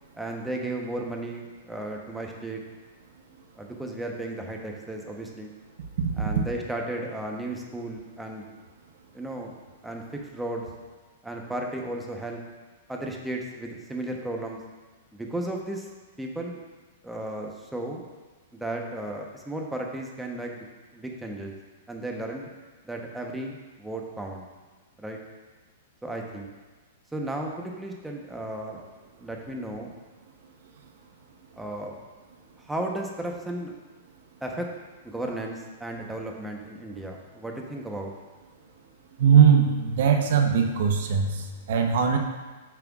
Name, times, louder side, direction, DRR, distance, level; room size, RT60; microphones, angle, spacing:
voice 1, 0.2-2.6 3.5-5.5 6.2-8.5 9.1-9.5 9.8-10.0 10.3-10.7 11.2-12.4 12.9-14.6 15.1-15.9 16.2-16.6 17.0-18.0 18.5-20.7 20.9-21.6 21.9-22.5 22.8-24.5 25.0-25.2 26.0-26.5 27.1-28.8 29.2-29.9 31.5-32.0 32.6-33.7 34.4-34.7 35.0-38.1, right 1 dB, 5° right, 0 dB, 0.9 m, -34 dB
voice 2, 39.2-42.2, right 7 dB, 65° right, 4 dB, 0.8 m, -20 dB
8.9 x 5.6 x 2.4 m, 1.3 s
hypercardioid pair, 130°, 0 cm